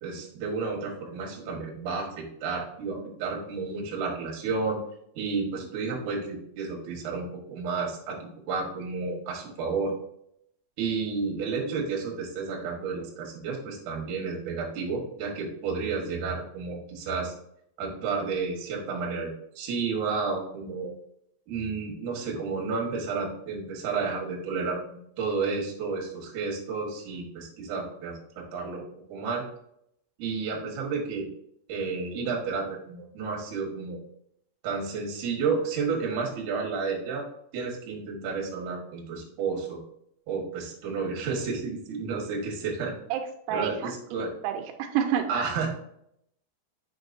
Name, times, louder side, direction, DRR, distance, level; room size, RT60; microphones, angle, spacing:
voice 1, 0.0-4.8 5.2-8.2 8.5-9.9 10.8-17.3 17.8-20.9 21.5-29.4 30.2-31.3 31.7-34.0 34.6-37.2 37.5-39.8 40.3-42.9 43.5-44.3 45.3-45.7, right 4 dB, 60° right, -1 dB, 2.2 m, -31 dB
voice 2, 43.1-43.9 44.4-45.5, right 8 dB, 85° right, 5 dB, 2.9 m, -29 dB
7.8 x 5.8 x 2.6 m, 0.73 s
omnidirectional pair, 5.4 m